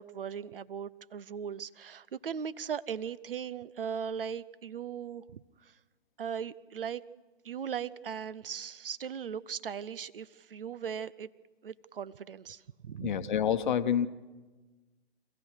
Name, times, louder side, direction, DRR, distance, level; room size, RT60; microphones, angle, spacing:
voice 1, 0.0-5.7 6.2-7.0 7.4-11.3 11.6-13.3, right 7 dB, 60° right, 19 dB, 0.8 m, -38 dB
voice 2, 13.0-14.1, left 9 dB, 50° left, 12 dB, 1.1 m, -27 dB
26.0 x 15.5 x 6.5 m, 1.2 s
figure-of-eight pair, 120°, 32 cm